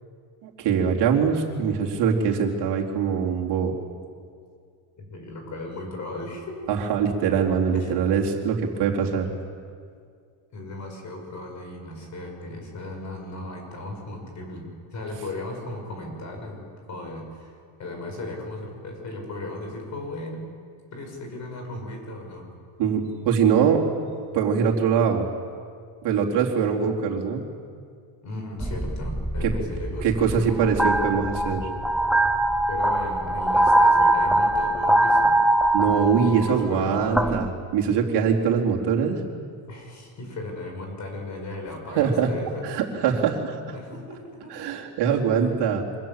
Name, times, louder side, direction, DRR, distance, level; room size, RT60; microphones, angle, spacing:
voice 1, 0.4-3.7 6.7-9.3 22.8-23.8 24.3-25.3 26.0-27.4 29.4-29.5 30.0-31.7 35.7-37.5 37.7-39.2 42.0-42.3 42.6-43.8 44.5-45.8, right 7 dB, 55° right, 0 dB, 4.0 m, -23 dB
voice 2, 5.0-6.6 7.7-7.9 10.5-20.5 20.9-22.5 28.2-30.5 32.7-35.4 35.9-37.4 39.7-42.6 43.7-44.6, left 2 dB, 35° left, 2 dB, 6.9 m, -36 dB
sound 1, 28.6-37.5, right 1 dB, ahead, 0.6 m, -22 dB
27.5 x 25.5 x 7.6 m, 2.2 s
cardioid pair, 155°, 48 cm